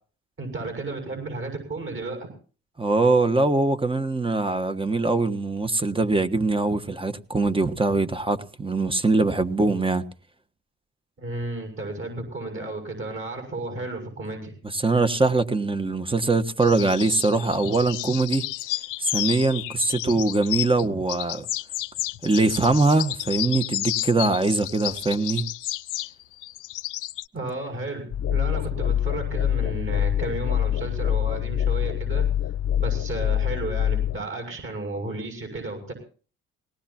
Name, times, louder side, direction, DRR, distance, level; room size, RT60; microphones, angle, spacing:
voice 1, 0.4-2.3 11.2-14.5 27.3-32.3 32.8-35.9, right 2 dB, 45° right, 7.1 m, -33 dB
voice 2, 2.8-10.0 14.7-18.4 19.0-21.4 22.2-25.4, right 3 dB, 15° right, 1.3 m, -22 dB
sound 1, 16.6-20.8 21.1-27.2, left 17 dB, 85° left, 0.6 m, -31 dB
sound 2, 28.1-34.2, left 10 dB, 55° left, 1.0 m, -25 dB
20.0 x 18.5 x 2.9 m
cardioid pair, 90°, 30 cm